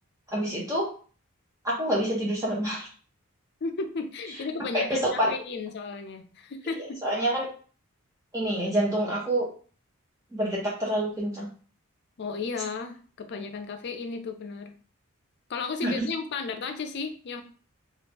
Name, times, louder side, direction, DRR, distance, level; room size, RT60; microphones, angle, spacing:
voice 1, 0.3-0.9 1.6-2.9 4.7-5.3 7.0-7.5 8.3-9.5 10.3-11.5 15.8-16.0, right 1 dB, 15° right, -4 dB, 0.7 m, -27 dB
voice 2, 3.6-7.0 12.2-14.7 15.5-17.4, left 4 dB, 55° left, 7 dB, 0.5 m, -34 dB
3.1 x 2.4 x 3.4 m, 0.40 s
head